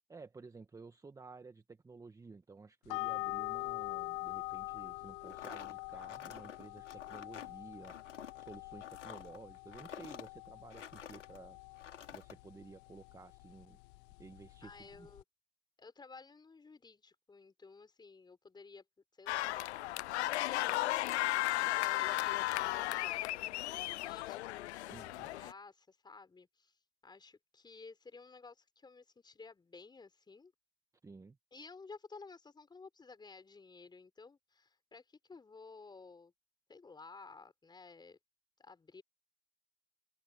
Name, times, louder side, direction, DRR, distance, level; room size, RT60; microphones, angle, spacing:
voice 1, 0.1-7.9 8.4-11.6 11.8-13.8 14.2-15.1 24.9-25.3 31.0-31.4, right 4 dB, 10° right, 1.6 m, -53 dB
sound 1, 2.9-15.2, left 31 dB, 50° left, 1.1 m, -45 dB
sound 2, 5.2-11.4 11.8-12.4, left 8 dB, 90° left, 4.0 m, -50 dB
voice 2, 14.6-15.2 15.8-18.8 19.1-19.9 20.3-26.7 27.0-30.5 31.5-36.3 36.7-38.2 38.6-39.0, left 4 dB, 10° left, 4.7 m, -55 dB
sound 3, 19.3-25.5, left 17 dB, 70° left, 0.5 m, -35 dB
hypercardioid pair, 110°, 35 cm